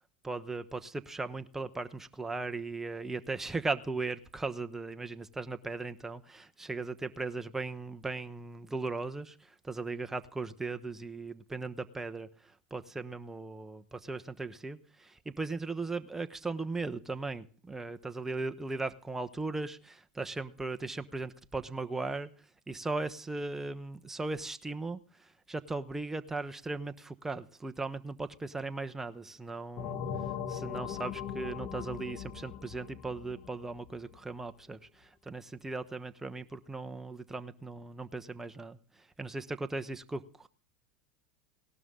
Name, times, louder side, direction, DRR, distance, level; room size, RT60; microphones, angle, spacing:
voice 1, 0.2-22.3 22.7-30.0 30.5-40.5, right 3 dB, 10° right, 9 dB, 1.1 m, -38 dB
sound 1, 29.8-34.2, left 8 dB, 50° left, 1.6 m, -39 dB
17.5 x 12.0 x 3.8 m, 0.42 s
hypercardioid pair, 95°, 4 cm